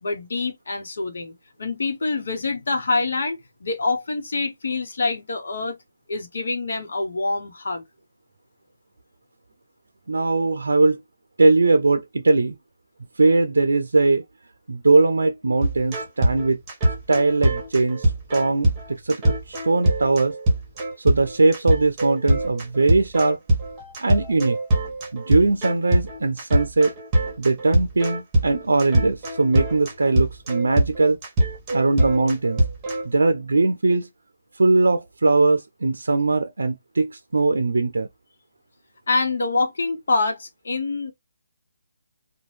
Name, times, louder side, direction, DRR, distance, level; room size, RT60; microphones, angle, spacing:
voice 1, 0.0-1.3 1.6-5.7 6.1-7.8 39.1-41.1, left 3 dB, 70° left, 0.9 m, -25 dB
voice 2, 10.1-11.0 11.4-12.6 13.2-14.2 14.7-16.6 17.1-20.3 21.0-23.4 24.0-24.6 25.1-26.9 27.4-31.2 31.7-32.6 33.0-34.1 34.6-38.1, right 3 dB, 90° right, 0.4 m, -20 dB
sound 1, 15.6-33.0, right 1 dB, 20° right, 1.0 m, -23 dB
2.6 x 2.2 x 3.2 m
hypercardioid pair, 160°, 0 cm